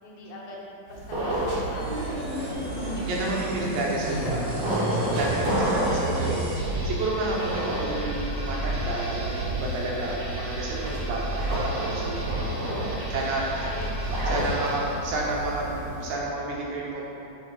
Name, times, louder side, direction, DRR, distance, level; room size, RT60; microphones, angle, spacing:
voice 1, 0.0-2.3 2.6-3.1 12.5-14.0 14.3-14.5 14.8-15.0, left 2 dB, 60° left, -4 dB, 2.0 m, -42 dB
sound 1, 0.9-16.1, right 1 dB, 55° right, 2.3 m, -32 dB
sound 2, 1.7-14.9, right 1 dB, 35° right, 1.7 m, -32 dB
voice 2, 2.4-2.8 3.0-12.5 13.1-13.7 14.3-17.0, right 2 dB, 70° right, -3 dB, 2.0 m, -31 dB
Fill (with liquid), 2.9-8.3, left 3 dB, 80° left, 2.6 m, -45 dB
8.8 x 4.9 x 4.8 m, 2.9 s
omnidirectional pair, 4.2 m